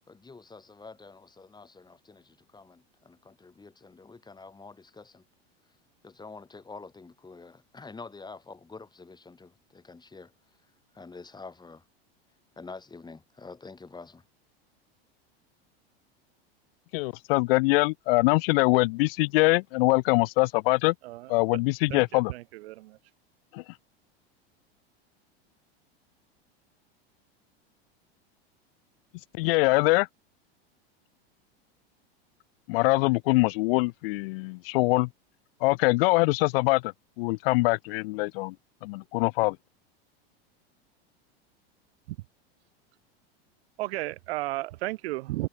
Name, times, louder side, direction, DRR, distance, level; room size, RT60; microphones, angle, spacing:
voice 1, 0.1-5.2 6.0-10.3 10.9-11.8 12.6-14.2, left 4 dB, 15° left, 7.8 m, -47 dB
voice 2, 16.9-20.9 21.3-22.3 23.5-23.6 29.3-30.1 32.7-35.1 35.6-36.9 37.2-38.5 38.8-39.6, left 24 dB, 65° left, 0.6 m, -23 dB
voice 3, 21.9-23.0 43.8-45.5, right 19 dB, 70° right, 1.2 m, -33 dB
supercardioid pair, 115°, 31 cm